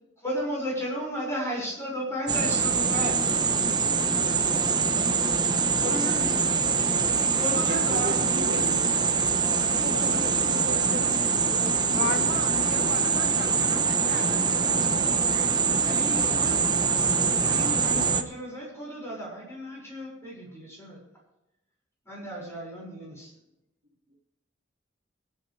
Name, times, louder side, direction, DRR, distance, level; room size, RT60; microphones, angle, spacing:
voice 1, 0.2-3.2 5.8-6.4 7.4-8.8 15.8-16.8 17.4-21.0 22.1-23.3, equal, 15° left, -4 dB, 5.8 m, -34 dB
sound 1, 2.3-18.2, right 5 dB, 25° right, 0.8 m, -24 dB
voice 2, 7.5-9.0 9.5-12.7 15.3-15.5, right 1 dB, 60° right, 2 dB, 1.8 m, -37 dB
voice 3, 11.9-15.2, left 3 dB, 55° left, 6 dB, 0.9 m, -36 dB
24.0 x 8.5 x 3.4 m, 0.90 s
head